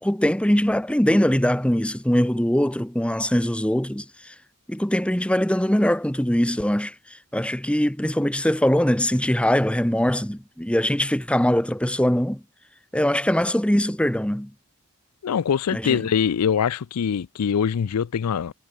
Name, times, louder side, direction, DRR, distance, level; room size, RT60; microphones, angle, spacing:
voice 1, 0.0-4.3 4.7-12.4 12.9-14.5 15.7-16.1, equal, 5° left, 1.1 m, -22 dB
voice 2, 15.2-18.5, left 7 dB, 85° left, 0.4 m, -23 dB
head